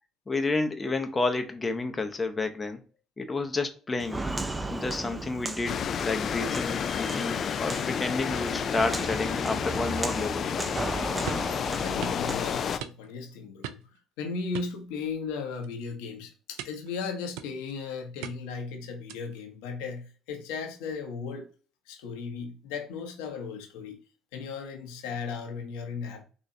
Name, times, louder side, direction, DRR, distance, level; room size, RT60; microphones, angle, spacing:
voice 1, 0.3-2.8 3.2-4.2 4.7-10.7, left 3 dB, 25° left, 0.8 m, -30 dB
Walk footsteps, 4.0-12.8, right 2 dB, 15° right, 0.5 m, -36 dB
sound 1, 5.7-12.8, left 7 dB, 50° left, 0.3 m, -31 dB
sound 2, 11.3-11.5 12.0-12.2 12.8-13.2 13.6-14.0 14.5-15.3 15.6-15.9 16.6-16.9 17.4-17.8 18.2-18.6 19.1-19.4, right 11 dB, 80° right, 0.3 m, -41 dB
voice 2, 11.8-13.8 14.2-21.5 21.9-24.0 24.3-26.2, left 5 dB, 80° left, 0.9 m, -36 dB
4.1 x 3.0 x 2.6 m
hypercardioid pair, 65°, 0 cm